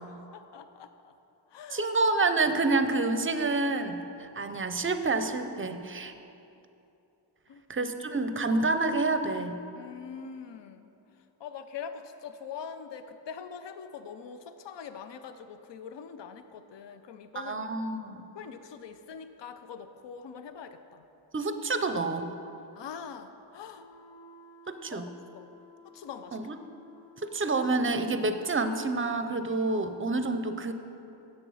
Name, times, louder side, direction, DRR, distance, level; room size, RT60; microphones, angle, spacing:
voice 1, 0.1-1.1 1.5-1.9 7.5-7.6 9.7-10.9 11.4-17.7 18.3-21.0 22.7-23.9 24.9-25.5 25.8-26.4, left 6 dB, 65° left, 10 dB, 0.6 m, -43 dB
voice 2, 1.7-6.1 7.7-9.6 17.3-18.3 21.3-22.3 24.7-25.1 26.3-26.6 27.2-30.7, right 3 dB, 30° right, 9 dB, 0.5 m, -28 dB
sound 1, 23.7-28.0, left 2 dB, 85° left, 1.4 m, -54 dB
7.8 x 6.9 x 6.3 m, 2.8 s
wide cardioid pair, 85°, 46 cm